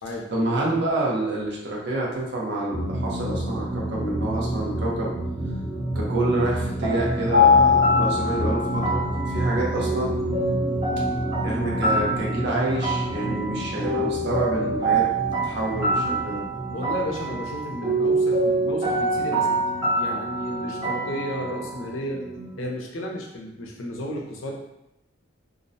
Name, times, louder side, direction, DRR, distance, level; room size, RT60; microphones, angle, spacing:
voice 1, 0.3-5.1 5.9-9.1 9.3-10.1 11.4-15.1 15.4-16.4, right 2 dB, 60° right, -3 dB, 0.6 m, -27 dB
sound 1, 2.7-22.6, right 1 dB, 30° right, 0.8 m, -31 dB
sound 2, 6.8-21.9, left 1 dB, 80° right, 1.1 m, -25 dB
voice 2, 15.9-16.3 16.7-19.6 19.9-22.2 22.6-24.6, equal, 90° left, 0 dB, 0.5 m, -33 dB
2.5 x 2.0 x 2.6 m, 0.86 s
head